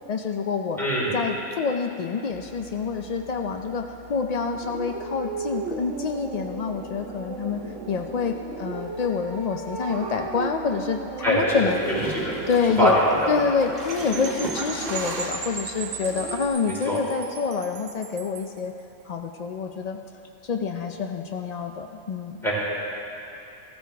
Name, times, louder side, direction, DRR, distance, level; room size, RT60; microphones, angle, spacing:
voice 1, 0.1-0.8 1.1-7.6 7.9-11.8 12.5-13.0 13.3-18.7 19.1-20.0 20.4-22.4, left 5 dB, 75° left, 4 dB, 0.3 m, -27 dB
voice 2, 0.8-1.1 11.2-11.7 12.1-12.3 12.8-13.3 16.9-17.0 22.4-22.5, equal, ahead, -8 dB, 3.5 m, -22 dB
sound 1, 2.3-16.5, right 4 dB, 70° right, 1.6 m, -37 dB
Gurgling / Toilet flush, 11.7-15.4, right 2 dB, 35° right, 2.0 m, -35 dB
Percussion / Wind chime, 13.9-18.6, right 5 dB, 85° right, 1.4 m, -37 dB
15.5 x 14.0 x 3.4 m, 2.9 s
omnidirectional pair, 1.3 m